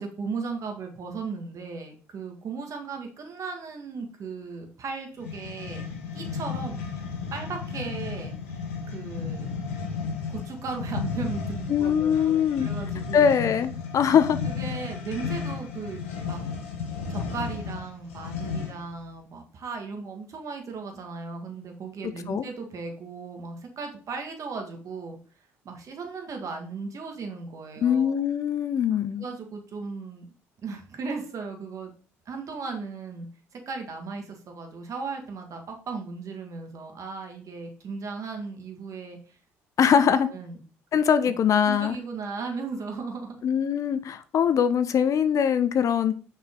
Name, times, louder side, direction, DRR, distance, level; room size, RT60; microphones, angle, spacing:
voice 1, 0.0-5.9 6.1-6.8 7.3-8.4 8.9-9.5 10.3-13.2 14.5-16.4 17.1-25.2 25.6-28.2 29.2-30.2 30.6-31.9 32.2-33.3 33.5-39.2 40.3-40.6 41.7-43.4, right 4 dB, 50° right, 4 dB, 1.7 m, -36 dB
sound 1, 5.2-18.9, left 5 dB, 85° left, 1.1 m, -33 dB
voice 2, 11.7-12.7 13.1-14.4 22.0-22.4 27.8-29.2 39.8-40.3 40.9-42.0 43.4-46.1, left 8 dB, 50° left, 13 dB, 0.5 m, -22 dB
5.6 x 4.7 x 3.6 m, 0.39 s
hypercardioid pair, 55°, 7 cm